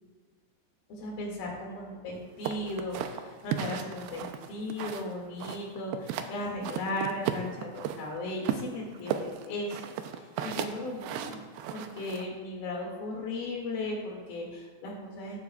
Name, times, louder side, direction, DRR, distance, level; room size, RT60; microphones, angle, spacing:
voice 1, 0.9-11.4 11.7-15.4, left 1 dB, 60° left, -2 dB, 3.6 m, -36 dB
sound 1, 2.4-5.1 5.4-6.3 6.6-8.0 8.4-12.3, right 9 dB, 85° right, 2.2 m, -34 dB
19.0 x 7.1 x 2.3 m, 1.5 s
omnidirectional pair, 5.1 m